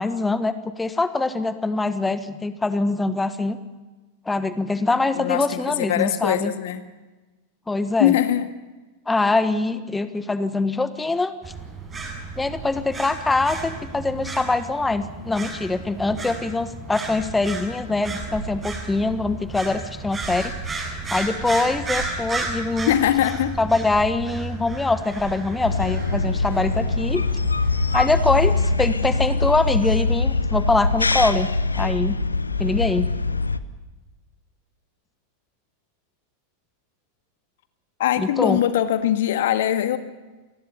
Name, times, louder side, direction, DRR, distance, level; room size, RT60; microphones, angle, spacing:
voice 1, 0.0-3.6 4.3-6.5 7.7-8.1 9.1-11.3 12.4-22.9 23.6-27.2 27.9-32.2 32.6-33.1 38.2-38.6, left 3 dB, 10° left, 12 dB, 1.3 m, -23 dB
voice 2, 5.1-6.8 8.0-8.5 22.9-23.5 38.0-40.0, left 11 dB, 55° left, 10 dB, 1.7 m, -21 dB
sound 1, 11.4-28.7, right 3 dB, 20° right, 7.6 m, -33 dB
sound 2, 25.6-33.6, left 3 dB, 80° left, 1.0 m, -23 dB
27.5 x 20.0 x 7.0 m, 1.2 s
figure-of-eight pair, 90°, 0 cm